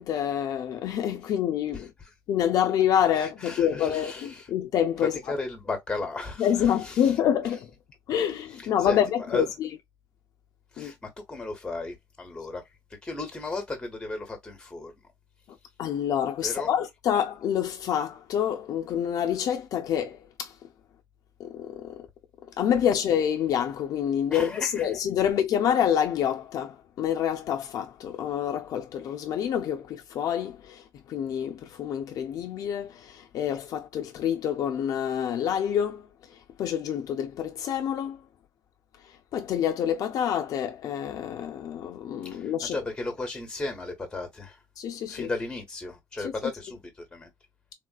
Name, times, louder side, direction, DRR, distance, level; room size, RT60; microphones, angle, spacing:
voice 1, 0.0-1.9 2.3-5.2 6.4-7.7 8.1-9.7 10.8-10.9 15.8-20.5 21.4-22.1 22.6-36.1 36.6-38.2 39.3-42.8 44.8-45.3 46.2-46.3, left 9 dB, 60° left, 0.5 m, -27 dB
voice 2, 3.1-4.4 5.3-6.5 6.8-6.9 8.8-9.0 9.3-9.4 10.7-12.6 13.0-14.9 16.4-16.7 24.3-24.9 42.3-44.6 45.1-47.3, left 2 dB, 10° left, 1.1 m, -35 dB
3.6 x 2.4 x 2.3 m
cardioid pair, 160°, 7 cm